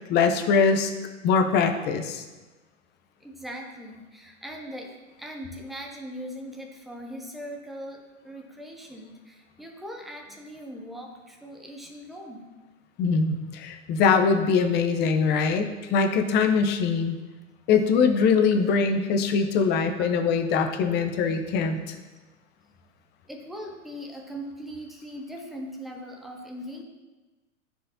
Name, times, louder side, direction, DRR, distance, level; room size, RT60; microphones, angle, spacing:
voice 1, 0.1-0.9 1.2-2.2 13.0-17.2 17.7-22.0, left 5 dB, 25° left, 7 dB, 0.7 m, -22 dB
voice 2, 3.2-4.9 5.2-12.4 20.0-20.1 23.3-26.8, equal, ahead, 1 dB, 0.3 m, -40 dB
13.5 x 4.7 x 2.7 m, 1.2 s
hypercardioid pair, 120°, 40 cm